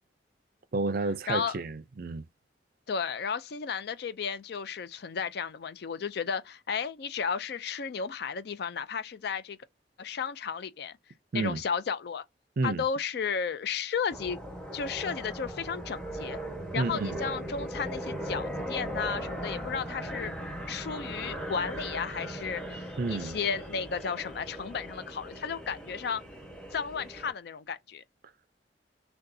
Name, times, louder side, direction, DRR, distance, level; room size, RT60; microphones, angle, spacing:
voice 1, 0.7-2.2 11.3-11.6 12.6-12.8 16.8-17.2 23.0-23.4, right 3 dB, 50° right, 0.5 m, -30 dB
voice 2, 1.3-1.6 2.9-9.6 10.0-11.0 11.3-12.2 12.6-14.4 14.7-16.4 16.7-20.3 20.7-26.2 26.7-28.0, left 6 dB, 60° left, 0.4 m, -33 dB
sound 1, 14.1-27.3, equal, 5° left, 1.2 m, -38 dB
6.5 x 2.3 x 2.7 m
head